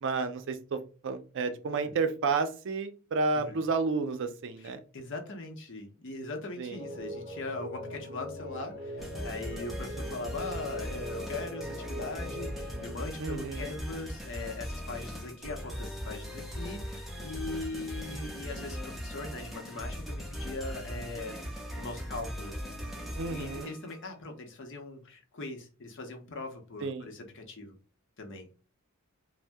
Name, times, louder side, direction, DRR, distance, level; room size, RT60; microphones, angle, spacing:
voice 1, 0.0-4.8 6.6-6.8 13.2-13.8 23.2-23.7 26.8-27.1, right 4 dB, 60° right, 8 dB, 0.4 m, -31 dB
voice 2, 4.6-21.4 21.8-22.6 23.3-27.8 28.2-28.6, left 2 dB, 60° left, 3 dB, 0.7 m, -40 dB
sound 1, 6.7-12.9, equal, 20° right, 0.9 m, -41 dB
sound 2, 9.0-24.0, equal, ahead, 0.6 m, -39 dB
2.6 x 2.1 x 3.3 m, 0.35 s
head